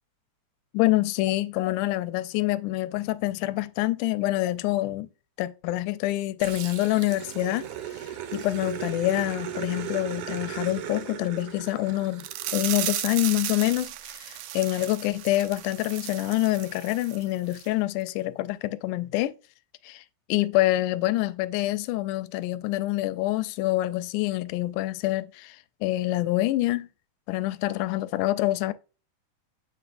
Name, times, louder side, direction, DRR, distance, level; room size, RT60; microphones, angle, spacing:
voice 1, 0.7-5.1 5.4-8.0 8.3-19.3 19.8-20.0 20.3-26.9 27.3-28.7, left 17 dB, 90° left, 2.1 m, -26 dB
Growling, 6.4-13.1, right 10 dB, 65° right, 1.5 m, -37 dB
sound 1, 12.2-17.2 17.5-17.7 18.1-18.2, right 13 dB, 85° right, 1.4 m, -35 dB
9.2 x 5.2 x 2.5 m
omnidirectional pair, 3.6 m